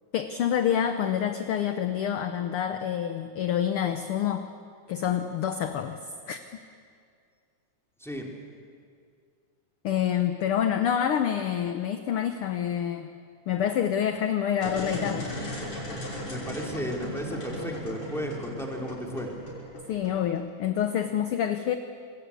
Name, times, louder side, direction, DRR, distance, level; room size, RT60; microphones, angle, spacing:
voice 1, 0.1-4.5 4.9-6.0 6.3-6.4 9.8-13.1 13.5-15.3 19.9-21.7, left 9 dB, 65° left, 8 dB, 1.4 m, -27 dB
sound 1, 14.5-20.4, equal, 45° left, 6.6 m, -36 dB
voice 2, 16.2-19.3, equal, ahead, 0 dB, 2.7 m, -34 dB
26.5 x 20.5 x 8.4 m, 2.2 s
omnidirectional pair, 3.4 m